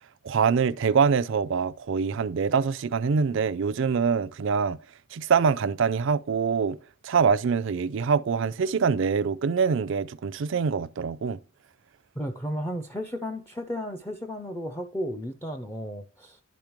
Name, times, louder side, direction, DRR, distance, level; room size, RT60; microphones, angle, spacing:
voice 1, 0.2-4.8 5.1-6.8 7.0-11.4, right 6 dB, 60° right, 0.4 m, -24 dB
voice 2, 12.2-16.4, equal, 10° left, 0.4 m, -34 dB
11.0 x 5.1 x 3.0 m
head